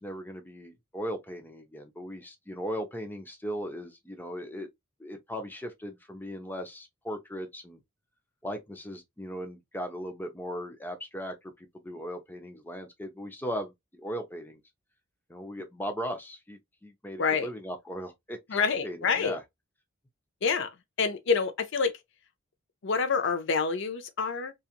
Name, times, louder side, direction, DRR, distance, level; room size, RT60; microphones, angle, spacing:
voice 1, 0.0-4.7 5.0-7.8 8.4-14.6 15.3-19.4, equal, 10° left, 0.5 m, -38 dB
voice 2, 17.2-17.5 18.5-19.4 20.4-20.7 21.0-21.9 22.8-24.5, left 5 dB, 60° left, 0.5 m, -27 dB
2.8 x 2.4 x 2.4 m
head